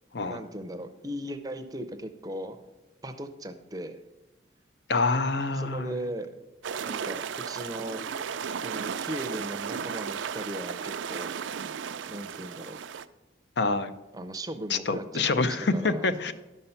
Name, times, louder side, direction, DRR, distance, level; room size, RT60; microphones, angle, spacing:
voice 1, 0.3-2.6 3.0-4.0 5.5-6.3 6.8-8.0 8.6-11.3 12.1-12.8 14.1-16.1, right 1 dB, 20° right, 8 dB, 0.6 m, -37 dB
voice 2, 4.9-5.9 13.6-13.9 14.7-16.3, left 3 dB, 60° left, 11 dB, 0.6 m, -26 dB
sound 1, 6.6-13.1, right 7 dB, 80° right, 0.4 m, -35 dB
11.5 x 5.5 x 5.7 m, 1.0 s
head